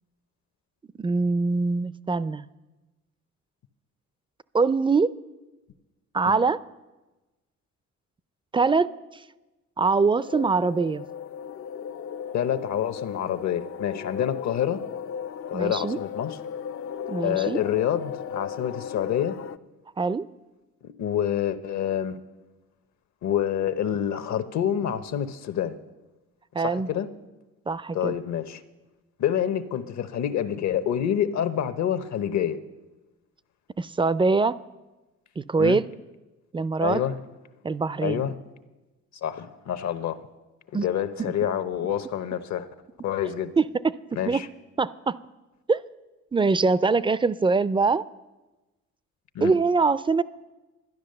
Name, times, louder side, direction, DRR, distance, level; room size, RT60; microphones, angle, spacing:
voice 1, 1.0-2.5 4.5-5.1 6.1-6.6 8.5-8.9 9.8-11.0 15.5-16.0 17.1-17.6 20.0-20.3 26.5-26.9 27.7-28.1 33.8-34.6 35.4-35.8 36.5-37.0 37.6-38.2 40.7-40.9 41.2-41.3 43.6-43.9 44.3-44.4 44.8-45.2 45.7-45.8 46.3-48.0 49.4-50.2, right 4 dB, 15° right, 17 dB, 0.4 m, -23 dB
sound 1, 10.2-19.6, left 8 dB, 45° left, 0.4 m, -36 dB
voice 2, 12.3-14.8 15.5-16.4 17.2-19.4 20.8-22.2 23.2-25.8 26.6-27.1 27.9-28.6 29.2-32.6 35.6-35.8 36.8-37.2 38.0-38.4 39.2-40.2 40.8-42.7 43.0-43.5 44.1-44.5 49.3-49.5, left 9 dB, 65° left, 11 dB, 0.9 m, -27 dB
12.0 x 10.5 x 6.6 m, 1.1 s
cardioid pair, 90°, 30 cm